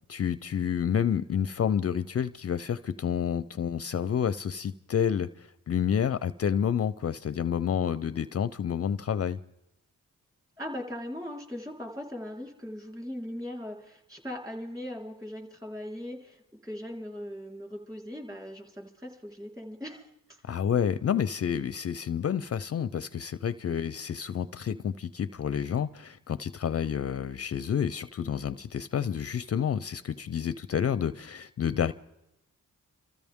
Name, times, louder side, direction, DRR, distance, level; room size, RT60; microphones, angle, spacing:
voice 1, 0.1-9.4 20.4-31.9, left 8 dB, 45° left, 0.5 m, -29 dB
voice 2, 10.6-20.4, left 1 dB, 10° right, 3.9 m, -39 dB
27.0 x 14.0 x 3.6 m
cardioid pair, 80°, 34 cm